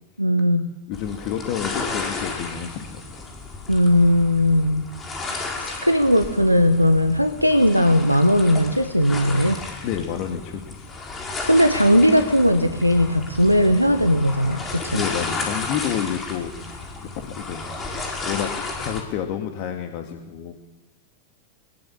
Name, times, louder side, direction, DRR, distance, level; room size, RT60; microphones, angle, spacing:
voice 1, 0.2-0.7 3.7-5.0 5.6-9.6 11.4-15.0, equal, 90° right, 8 dB, 1.2 m, -18 dB
voice 2, 0.9-3.3 9.8-11.0 14.9-16.5 17.2-17.7 18.2-18.5 18.8-20.5, left 9 dB, 45° left, 4 dB, 2.2 m, -29 dB
sound 1, 0.9-19.0, left 3 dB, 20° left, 5.1 m, -33 dB
22.0 x 21.5 x 7.3 m, 1.1 s
figure-of-eight pair, 90°, 0 cm